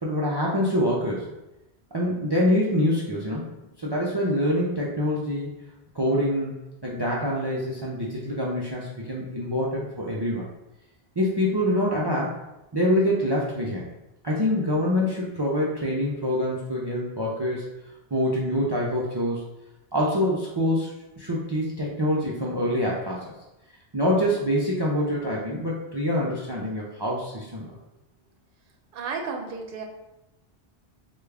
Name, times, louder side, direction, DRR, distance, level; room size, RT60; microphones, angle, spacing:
voice 1, 0.0-1.3 1.9-3.5 3.8-5.5 5.9-6.5 6.8-10.4 11.2-12.4 12.7-13.9 14.2-17.6 18.1-19.4 19.9-23.3 23.9-27.7, left 1 dB, 45° right, -4 dB, 0.3 m, -25 dB
voice 2, 28.9-29.8, right 4 dB, 65° right, 3 dB, 0.7 m, -33 dB
3.4 x 2.3 x 3.3 m, 0.95 s
omnidirectional pair, 1.1 m